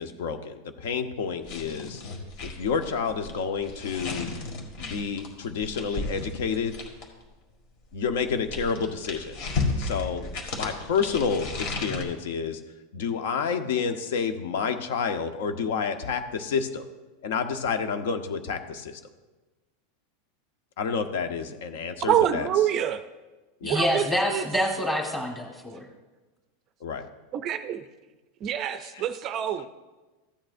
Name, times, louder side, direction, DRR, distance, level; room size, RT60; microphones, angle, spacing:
voice 1, 0.0-2.0 2.4-4.3 4.8-6.7 7.9-9.4 9.8-11.5 11.8-12.6 12.9-16.8 17.2-19.0 20.8-22.7 23.6-23.8 26.8-27.1 28.8-29.7, left 6 dB, 70° left, 7 dB, 0.9 m, -29 dB
sound 1, 1.4-7.2 8.1-12.0, left 3 dB, 50° left, 1.9 m, -34 dB
voice 2, 22.1-23.0 23.6-24.5 27.3-27.8 28.4-29.7, right 10 dB, 30° right, 10 dB, 0.4 m, -26 dB
voice 3, 23.6-25.8, equal, 5° left, 0 dB, 1.4 m, -26 dB
14.5 x 8.8 x 2.6 m, 1.2 s
supercardioid pair, 165°, 0 cm